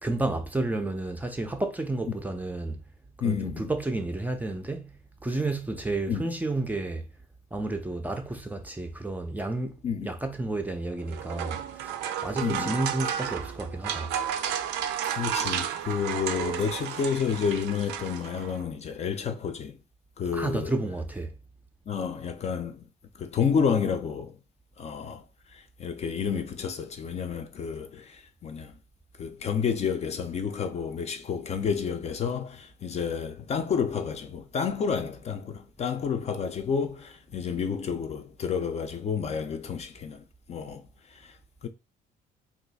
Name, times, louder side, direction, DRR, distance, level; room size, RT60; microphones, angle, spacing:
voice 1, 0.0-2.8 3.2-4.9 5.2-7.1 7.5-14.1 20.3-21.3, right 2 dB, 10° right, 0.5 m, -31 dB
voice 2, 3.2-3.7 6.1-6.3 9.8-10.1 12.4-12.8 15.1-19.7 20.2-20.7 21.9-22.8 23.2-24.3 24.8-25.2 25.5-28.8 29.2-40.8 41.1-41.4 41.6-41.7, left 6 dB, 40° left, 0.5 m, -30 dB
sound 1, 11.0-18.6, right 9 dB, 85° right, 0.4 m, -32 dB
2.7 x 2.4 x 3.9 m
cardioid pair, 110°, 17 cm